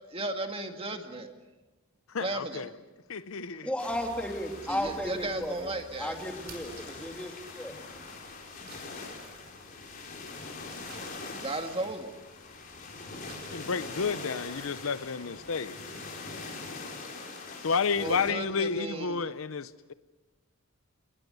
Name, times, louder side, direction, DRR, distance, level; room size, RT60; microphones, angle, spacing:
voice 1, 0.1-1.3 2.2-2.7 4.7-6.2 11.4-12.1 17.9-19.3, right 2 dB, 25° right, 2.0 m, -35 dB
voice 2, 2.1-2.7 3.1-3.7 13.5-15.8 17.6-19.9, left 5 dB, 65° left, 0.7 m, -31 dB
voice 3, 3.6-5.7 6.0-7.8, left 1 dB, 5° left, 2.6 m, -34 dB
sound 1, 3.8-18.3, left 3 dB, 40° left, 4.9 m, -43 dB
sound 2, 3.9-14.8, right 2 dB, 50° right, 5.7 m, -55 dB
29.0 x 20.0 x 6.8 m
head